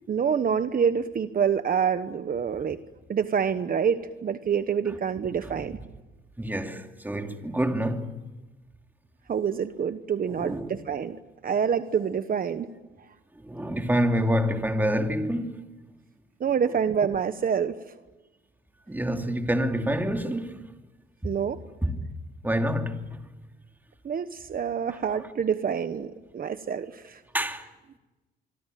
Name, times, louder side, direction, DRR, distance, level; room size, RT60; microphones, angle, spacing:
voice 1, 0.1-2.8 3.1-5.8 9.3-11.2 11.4-12.7 16.4-17.8 21.2-21.6 24.0-27.2, right 7 dB, 45° right, 1.2 m, -27 dB
voice 2, 6.4-8.2 10.3-10.7 13.4-15.7 18.9-20.7 21.2-21.3 21.8-22.1 22.4-23.2 27.3-27.7, equal, 10° right, 2.7 m, -27 dB
25.5 x 24.0 x 9.3 m
cardioid pair, 90°, 20 cm